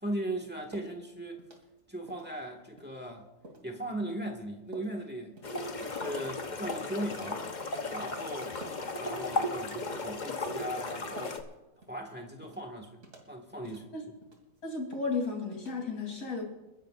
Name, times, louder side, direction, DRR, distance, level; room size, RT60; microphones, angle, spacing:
voice 1, 0.0-1.4 1.9-3.3 3.6-5.3 5.8-7.4 7.9-8.6 9.0-11.4 11.9-13.0 13.3-13.9, right 1 dB, 5° right, 2 dB, 1.6 m, -38 dB
sound 1, 0.7-1.0 1.4-1.8 2.1-2.3 2.8-2.9 3.4-3.7 4.1-4.2 4.7-5.0 5.4-5.6 6.0-6.2 6.7-7.0 7.3-7.5 8.0-8.3 8.6-8.9 9.2-9.6 9.9-10.1 10.5-10.6 11.2-11.5 11.8-12.0 12.4-12.6 13.0-13.3 13.6-13.9 14.2-14.6 14.9-15.2 15.5-15.7, right 1 dB, 60° right, 2.7 m, -49 dB
sound 2, 5.4-11.4, left 2 dB, 35° left, 1.0 m, -35 dB
voice 2, 14.6-16.4, left 4 dB, 70° left, -1 dB, 3.9 m, -34 dB
29.5 x 10.5 x 2.5 m, 1.0 s
omnidirectional pair, 1.6 m